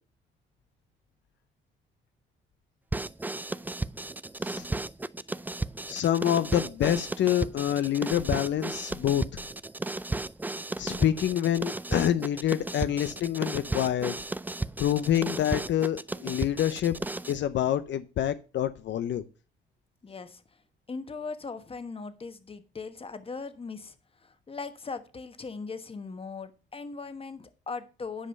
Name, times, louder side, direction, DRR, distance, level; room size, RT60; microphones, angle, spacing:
sound 1, 2.9-17.4, right 2 dB, 10° right, 0.4 m, -34 dB
voice 1, 5.9-9.2 10.8-14.2 14.8-16.9 17.3-19.2, left 11 dB, 65° left, 0.6 m, -27 dB
voice 2, 20.0-20.4 20.9-23.9 24.2-28.3, left 4 dB, 30° left, 1.3 m, -39 dB
10.0 x 5.4 x 5.4 m
cardioid pair, 90°, 20 cm